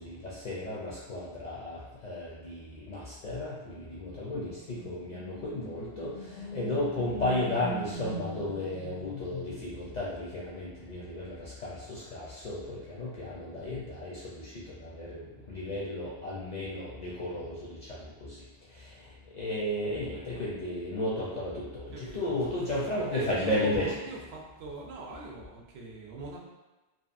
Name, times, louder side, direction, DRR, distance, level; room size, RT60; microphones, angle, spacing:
voice 1, 0.0-18.4 18.7-24.0, left 1 dB, 55° left, -7 dB, 0.5 m, -34 dB
voice 2, 21.9-22.4 23.1-26.4, right 2 dB, 70° right, -2 dB, 0.8 m, -42 dB
2.8 x 2.4 x 2.4 m, 1.1 s
omnidirectional pair, 1.2 m